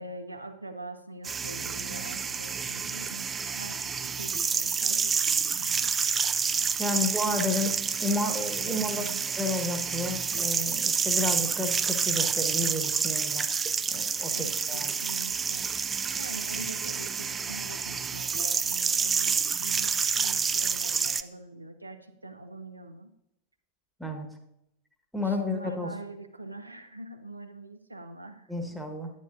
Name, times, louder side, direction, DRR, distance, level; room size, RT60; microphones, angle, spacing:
voice 1, 0.0-6.0 6.9-7.6 8.6-9.3 14.3-15.7 16.1-23.1 25.2-28.8, right 2 dB, 85° right, 7 dB, 0.5 m, -43 dB
sound 1, 1.2-21.2, right 6 dB, 20° right, 0.4 m, -29 dB
voice 2, 6.8-9.1 9.4-13.5 13.9-14.4 14.7-14.9 24.0-24.3 25.1-25.9 28.5-29.1, left 2 dB, ahead, 3 dB, 1.3 m, -31 dB
10.5 x 10.0 x 2.5 m, 0.83 s
figure-of-eight pair, 90°, 0 cm